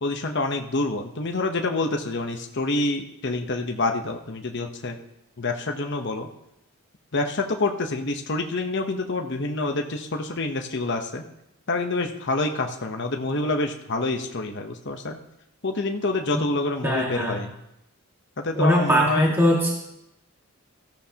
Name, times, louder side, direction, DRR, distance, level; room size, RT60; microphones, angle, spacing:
voice 1, 0.0-4.9 5.4-6.3 7.1-11.2 11.7-15.2 15.6-17.5 18.4-19.3, left 2 dB, 55° left, 3 dB, 0.9 m, -27 dB
voice 2, 16.8-17.4 18.5-19.7, equal, 10° right, -3 dB, 1.7 m, -21 dB
16.5 x 14.0 x 2.9 m, 0.85 s
head